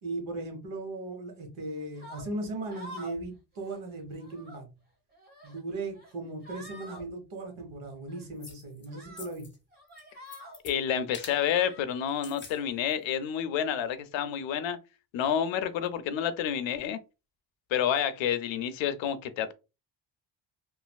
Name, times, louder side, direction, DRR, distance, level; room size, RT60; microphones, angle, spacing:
voice 1, 0.0-4.7 5.4-9.5, right 2 dB, 85° right, 1.3 m, -37 dB
sound 1, 1.9-2.3 2.7-3.2 3.5-3.8 4.1-4.6 5.1-5.6 5.9-6.1 6.4-7.0 8.1-8.2 8.9-9.3 9.7-10.6 11.3-11.8, equal, 20° right, 1.1 m, -47 dB
sound 2, 8.4-8.9 9.2-9.6 9.9-10.7 11.1-11.4 12.1-12.6 12.9-13.0, left 5 dB, 25° left, 0.7 m, -45 dB
voice 2, 10.6-14.8 15.1-17.0 17.7-19.5, left 9 dB, 90° left, 0.6 m, -29 dB
3.2 x 2.5 x 2.2 m
cardioid pair, 150°, 45 cm